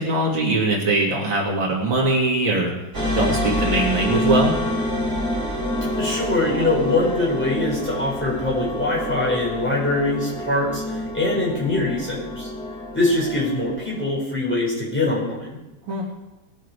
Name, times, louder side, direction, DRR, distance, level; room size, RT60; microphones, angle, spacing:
voice 1, 0.0-2.7 3.1-4.6 15.9-16.0, right 2 dB, 80° right, -2 dB, 3.0 m, -21 dB
sound 1, 2.9-14.2, left 1 dB, 35° right, 4.8 m, -27 dB
voice 2, 6.0-12.5 12.9-15.5, left 2 dB, 5° left, -5 dB, 4.7 m, -23 dB
19.0 x 7.8 x 4.8 m, 1.0 s
omnidirectional pair, 2.1 m